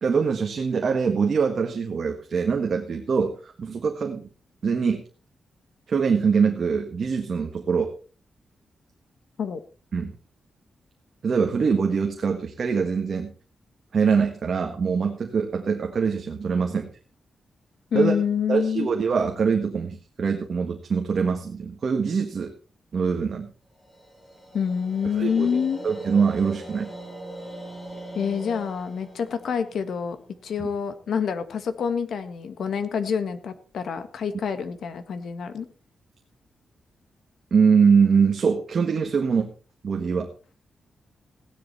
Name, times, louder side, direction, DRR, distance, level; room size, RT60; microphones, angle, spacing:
voice 1, 0.0-4.3 4.6-5.0 5.9-7.9 9.9-10.1 11.2-13.3 13.9-16.9 17.9-18.1 18.5-22.5 22.9-23.5 25.2-25.5 25.8-26.9 30.6-30.7 37.5-39.5 39.8-40.3, right 5 dB, 45° right, 3 dB, 1.6 m, -23 dB
voice 2, 17.9-18.9 24.5-25.8 28.1-30.2 30.4-35.7, left 7 dB, 65° left, 10 dB, 1.6 m, -27 dB
sound 1, 23.8-30.9, right 1 dB, 20° left, 5.1 m, -41 dB
16.5 x 10.5 x 4.2 m, 0.38 s
wide cardioid pair, 175°, 0 cm